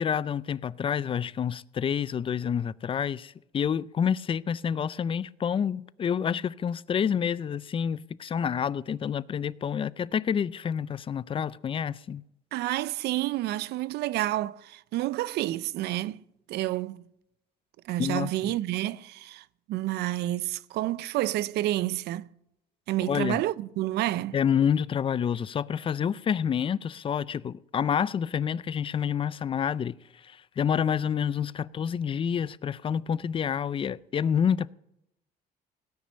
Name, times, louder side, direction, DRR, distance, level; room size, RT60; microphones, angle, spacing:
voice 1, 0.0-12.2 18.0-18.5 23.1-23.4 24.3-29.9 30.2-34.7, left 8 dB, 30° left, 0.4 m, -28 dB
voice 2, 12.5-16.2 16.5-17.0 17.8-22.3 22.9-24.4, right 15 dB, 75° right, 0.5 m, -29 dB
18.0 x 6.1 x 9.7 m
cardioid pair, 110°, 17 cm